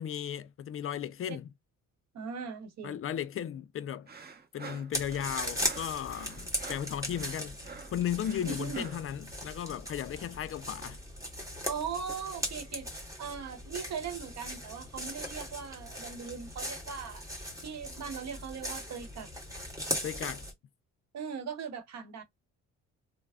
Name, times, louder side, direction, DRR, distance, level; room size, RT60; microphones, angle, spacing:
voice 1, 0.0-1.5 2.8-4.1 4.5-11.0 20.0-20.5, left 10 dB, 45° left, 0.4 m, -35 dB
voice 2, 2.1-3.0 8.4-8.8 11.7-12.9 13.2-17.2 17.6-19.3 21.1-22.2, right 6 dB, 60° right, 1.0 m, -39 dB
sound 1, 4.1-9.1, right 5 dB, 30° right, 0.8 m, -47 dB
sound 2, 4.9-20.5, equal, 10° right, 1.6 m, -39 dB
3.2 x 2.0 x 3.5 m
cardioid pair, 90°, 30 cm